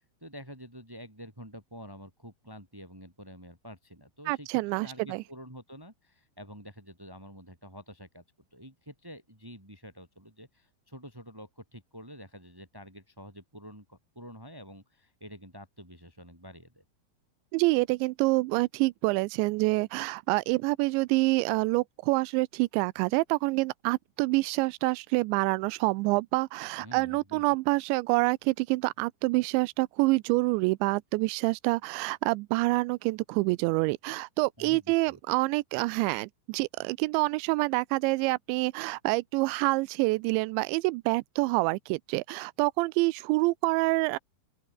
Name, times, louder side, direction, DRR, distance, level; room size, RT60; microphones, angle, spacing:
voice 1, 0.0-8.2 8.5-16.8 26.8-27.4 34.6-35.2, equal, 5° right, 7.2 m, -48 dB
voice 2, 4.3-5.2 17.5-44.2, right 24 dB, 80° right, 2.7 m, -27 dB
open air
omnidirectional pair, 5.5 m